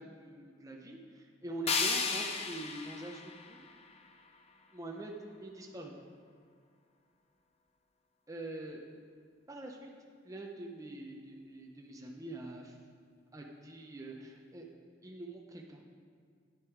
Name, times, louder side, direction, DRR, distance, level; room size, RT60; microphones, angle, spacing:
voice 1, 0.0-3.6 4.7-5.1 5.4-5.9 8.3-8.8 9.5-9.9 10.2-12.8 13.3-14.7 15.0-15.8, right 2 dB, 15° right, 0 dB, 0.8 m, -44 dB
sound 1, 1.7-4.6, left 5 dB, 30° left, 0.7 m, -35 dB
9.7 x 8.3 x 4.7 m, 2.1 s
head